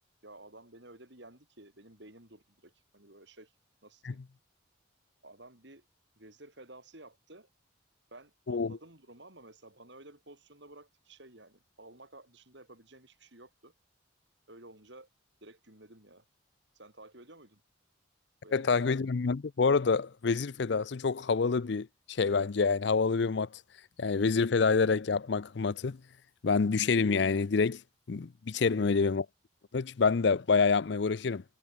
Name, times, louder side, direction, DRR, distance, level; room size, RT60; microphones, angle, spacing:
voice 1, 0.2-3.5 3.8-4.2 5.2-5.9 6.2-7.5 8.1-13.7 14.5-15.1 15.4-16.2 16.7-17.6 18.4-19.1 28.6-29.0, right 2 dB, 60° right, 5.3 m, -53 dB
voice 2, 8.5-8.8 18.5-23.5 24.0-26.0 26.4-27.8 28.1-29.2 29.7-31.4, left 4 dB, 55° left, 0.5 m, -27 dB
head